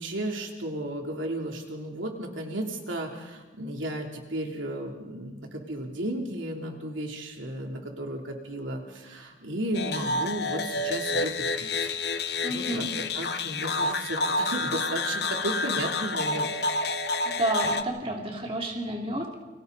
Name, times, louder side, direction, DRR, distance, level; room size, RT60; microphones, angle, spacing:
voice 1, 0.0-12.8 13.1-16.5, right 1 dB, 90° right, 1 dB, 3.3 m, -34 dB
sound 1, 9.7-17.8, left 3 dB, 55° left, 1.0 m, -29 dB
voice 2, 12.4-12.9 17.2-19.3, right 1 dB, 30° right, 1 dB, 2.7 m, -30 dB
29.5 x 24.5 x 4.1 m, 1.2 s
head